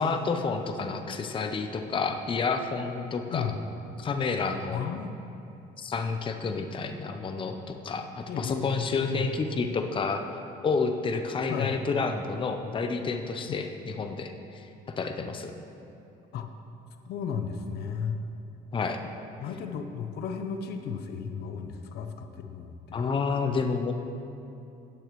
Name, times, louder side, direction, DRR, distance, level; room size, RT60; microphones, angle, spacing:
voice 1, 0.0-3.5 4.0-4.8 5.8-15.5 18.7-19.0 22.9-23.9, left 4 dB, 30° left, 5 dB, 0.7 m, -30 dB
voice 2, 3.3-3.6 4.7-5.2 8.3-9.3 11.5-11.7 16.3-16.5 17.0-18.2 19.4-23.0, left 7 dB, 70° left, 6 dB, 0.7 m, -34 dB
15.0 x 8.8 x 3.1 m, 2.8 s
cardioid pair, 110°, 17 cm